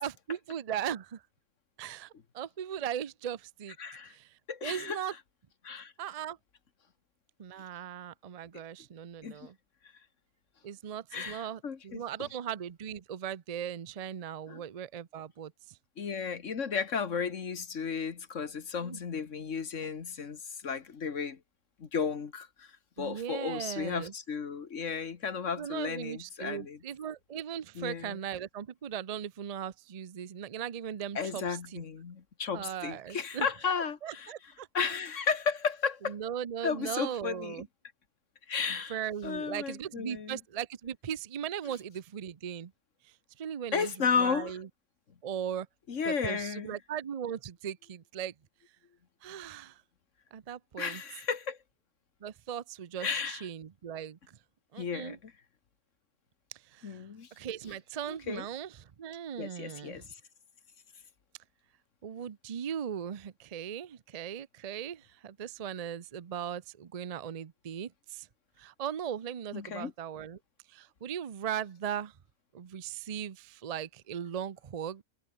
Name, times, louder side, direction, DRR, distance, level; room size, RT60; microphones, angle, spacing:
voice 1, 0.0-1.2 1.8-3.8 4.1-5.1 6.0-6.4 7.4-9.6 10.6-15.8 18.7-19.0 23.0-24.1 25.6-31.8 32.5-33.5 34.0-34.7 36.0-37.7 38.7-42.7 43.0-44.7 45.2-45.7 46.1-48.3 49.2-49.8 50.3-51.0 52.2-54.4 54.7-55.2 56.5-57.0 57.3-60.0 62.0-68.3 68.6-70.4 70.7-72.2 72.5-75.0, right 9 dB, 90° right, 0.3 m, -38 dB
voice 2, 3.8-4.1 4.5-5.0 5.6-5.9 9.2-9.4 11.1-12.3 14.5-14.6 16.0-21.4 21.8-22.7 23.0-26.8 27.8-28.2 31.2-34.3 34.7-36.2 36.6-37.6 38.5-39.0 39.2-40.4 43.7-44.6 45.9-46.7 50.8-51.6 53.0-53.4 54.8-55.3 56.8-57.3 58.1-58.5 59.4-60.0 69.5-69.9, left 6 dB, 50° left, 1.7 m, -34 dB
omnidirectional pair, 1.7 m